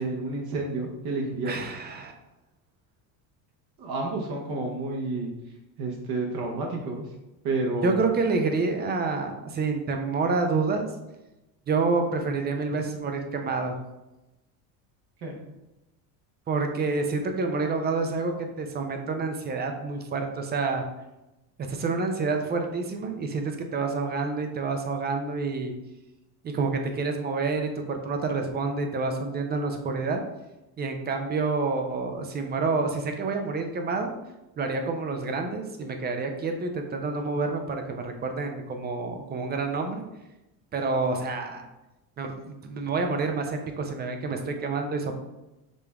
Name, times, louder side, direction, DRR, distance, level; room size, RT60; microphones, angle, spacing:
voice 1, 0.0-1.5 3.8-5.3 5.8-7.1 7.4-8.0 15.2-15.4, right 2 dB, 50° right, 0 dB, 0.9 m, -30 dB
voice 2, 1.5-2.1 7.8-10.9 11.7-13.8 16.5-20.8 21.6-25.7 26.4-30.2 30.8-34.1 34.6-40.0 40.7-41.7 42.2-45.2, right 4 dB, 25° right, 5 dB, 0.4 m, -28 dB
5.1 x 3.3 x 2.3 m, 0.98 s
supercardioid pair, 110°, 46 cm